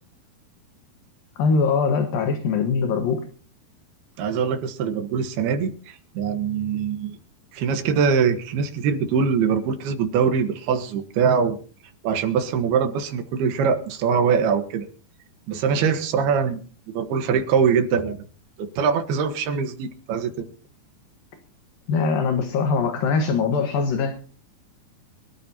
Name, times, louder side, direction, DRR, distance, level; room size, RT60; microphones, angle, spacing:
voice 1, 1.4-3.2 21.9-24.2, left 5 dB, 65° left, 4 dB, 3.1 m, -22 dB
voice 2, 4.2-7.2 7.5-11.6 12.0-14.9 15.5-16.6 16.9-18.2 18.6-20.4, right 6 dB, 75° right, 7 dB, 3.3 m, -23 dB
25.5 x 13.5 x 2.9 m, 0.41 s
omnidirectional pair, 4.6 m